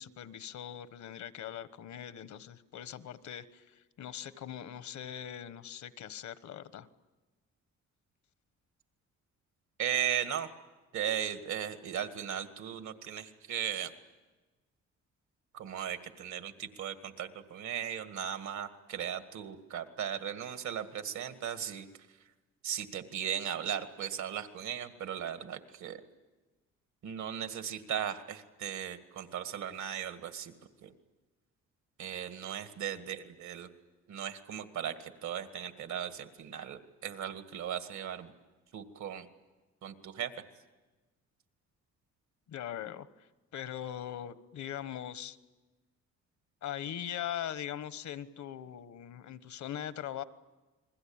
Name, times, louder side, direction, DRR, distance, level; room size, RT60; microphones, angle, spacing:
voice 1, 0.0-6.9 42.5-43.1 43.5-45.4 46.6-50.2, left 10 dB, 70° left, 13 dB, 1.3 m, -41 dB
voice 2, 9.8-10.5 10.9-13.9 15.5-21.9 22.6-26.0 27.0-30.5 30.8-30.9 32.0-33.7 34.1-38.3 38.7-39.3 39.8-40.3, right 9 dB, 70° right, 9 dB, 2.0 m, -37 dB
29.5 x 21.5 x 8.9 m, 1.2 s
cardioid pair, 90°, 30 cm